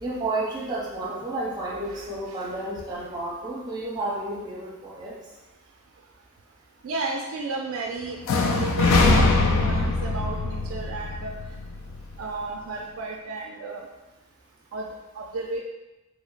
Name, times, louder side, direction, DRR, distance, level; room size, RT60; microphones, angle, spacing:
voice 1, 0.0-5.1, right 2 dB, 20° right, -6 dB, 0.8 m, -31 dB
voice 2, 1.9-2.5 6.8-8.2 8.5-9.3 9.6-11.3 12.2-13.9 14.7-15.6, right 3 dB, 70° right, 1 dB, 0.3 m, -33 dB
sound 1, 8.2-12.2, left 3 dB, 75° left, 0.4 m, -22 dB
3.0 x 2.1 x 3.8 m, 1.0 s
head